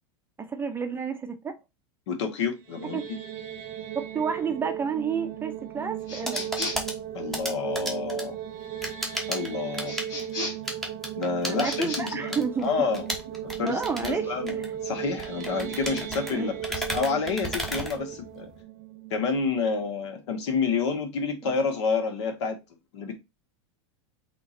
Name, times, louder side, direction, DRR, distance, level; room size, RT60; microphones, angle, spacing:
voice 1, 0.4-1.5 2.9-3.0 3.9-6.5 11.5-12.7 13.6-14.3 16.3-16.5, right 6 dB, 15° right, 0.6 m, -30 dB
voice 2, 2.1-3.2 7.1-8.4 9.3-9.9 11.2-13.0 13.4-18.5 19.1-22.6 22.9-23.2, left 5 dB, 80° left, 1.4 m, -29 dB
sound 1, 2.5-19.6, right 11 dB, 40° right, 0.9 m, -36 dB
sound 2, 6.0-18.6, equal, ahead, 1.0 m, -36 dB
sound 3, 6.1-6.9 9.8-10.7 11.5-12.0, left 2 dB, 30° left, 2.7 m, -35 dB
3.7 x 2.9 x 4.3 m
supercardioid pair, 135°, 15 cm